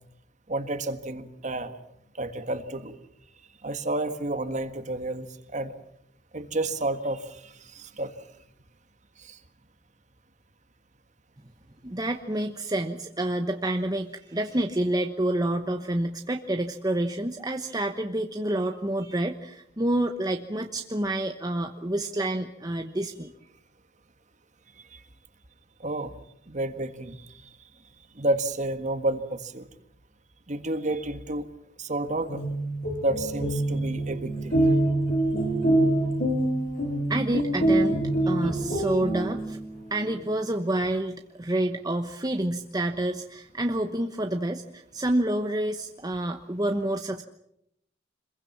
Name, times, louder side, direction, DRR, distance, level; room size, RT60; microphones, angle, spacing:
voice 1, 0.5-1.8 2.2-2.9 3.6-5.3 5.5-5.7 6.3-8.1 9.2-9.4 24.9-25.0 25.8-26.1 26.5-27.5 28.2-29.7 30.5-31.4 31.8-32.4 33.0-34.6, right 2 dB, 40° right, 9 dB, 1.7 m, -30 dB
voice 2, 11.8-23.3 37.1-38.0 38.3-39.6 39.9-47.2, right 1 dB, 20° right, 5 dB, 1.0 m, -28 dB
sound 1, 32.2-39.8, right 1 dB, 55° left, 6.8 m, -25 dB
26.5 x 22.0 x 7.3 m, 0.77 s
head